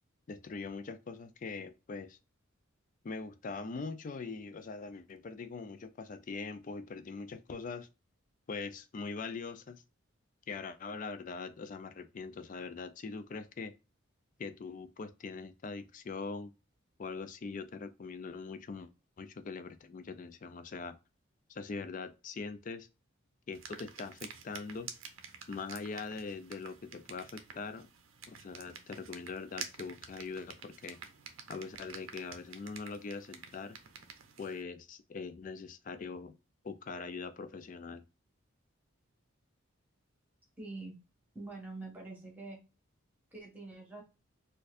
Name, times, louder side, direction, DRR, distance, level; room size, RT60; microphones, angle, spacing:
voice 1, 0.3-2.2 3.0-7.9 8.5-9.8 10.5-13.7 14.4-16.5 17.0-18.9 19.2-21.0 21.5-22.9 23.5-24.9 25.5-27.9 28.3-31.0 31.5-33.8 34.4-36.3 36.6-38.0, left 4 dB, 35° left, 0.3 m, -42 dB
sound 1, 23.5-34.6, right 7 dB, 70° right, 0.6 m, -49 dB
voice 2, 40.6-41.0 41.3-42.6 43.3-44.0, right 3 dB, 10° right, 1.2 m, -45 dB
4.2 x 2.6 x 2.4 m
head